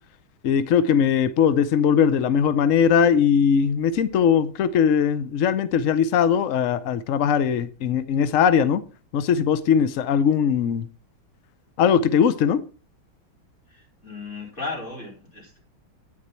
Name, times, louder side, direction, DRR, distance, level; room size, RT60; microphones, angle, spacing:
voice 1, 0.4-8.8 9.1-10.9 11.8-12.6, left 7 dB, 75° left, 0.7 m, -20 dB
voice 2, 13.7-15.6, left 3 dB, 35° left, 4.9 m, -35 dB
9.8 x 9.7 x 4.4 m
omnidirectional pair, 2.2 m